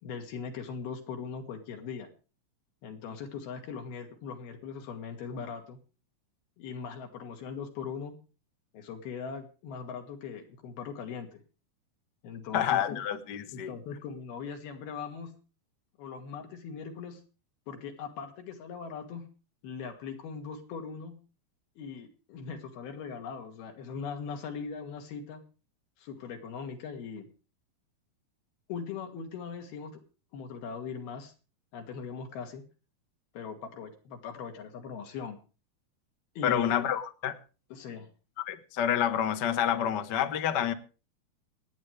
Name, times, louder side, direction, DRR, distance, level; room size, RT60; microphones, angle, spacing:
voice 1, 0.0-2.1 2.8-5.8 6.6-8.2 8.7-11.4 12.2-13.0 13.5-15.3 16.0-17.2 17.7-19.3 19.6-21.2 21.8-25.4 26.0-27.3 28.7-30.0 30.3-31.3 31.7-32.6 33.3-35.4 36.4-36.9 37.7-38.1, left 6 dB, 90° left, 4.2 m, -40 dB
voice 2, 12.5-13.7 36.4-37.4 38.5-40.7, left 9 dB, 60° left, 1.0 m, -28 dB
27.5 x 9.5 x 3.3 m
omnidirectional pair, 4.2 m